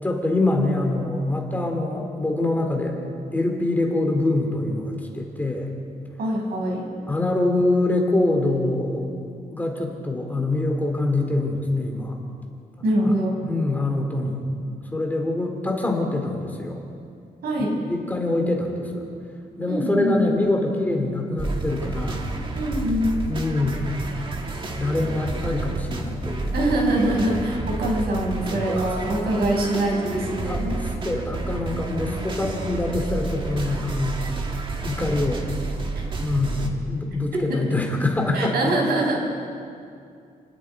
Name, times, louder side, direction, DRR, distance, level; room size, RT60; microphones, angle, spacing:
voice 1, 0.0-3.0 3.3-5.7 7.1-9.3 9.5-12.2 13.0-13.1 13.4-14.4 14.9-16.8 17.6-19.0 19.6-22.2 23.3-23.9 24.8-26.5 28.5-29.3 30.2-30.8 31.0-34.4 34.8-35.4 36.2-38.6, left 2 dB, 10° left, 1 dB, 2.6 m, -25 dB
voice 2, 6.2-6.9 12.8-13.3 17.4-17.8 19.7-20.3 22.5-23.1 26.5-30.8 37.3-37.7 38.3-39.1, right 1 dB, 85° right, -1 dB, 6.0 m, -24 dB
sound 1, 21.4-36.7, right 3 dB, 35° right, 1.9 m, -30 dB
29.5 x 19.5 x 4.6 m, 2.4 s
wide cardioid pair, 170°, 16 cm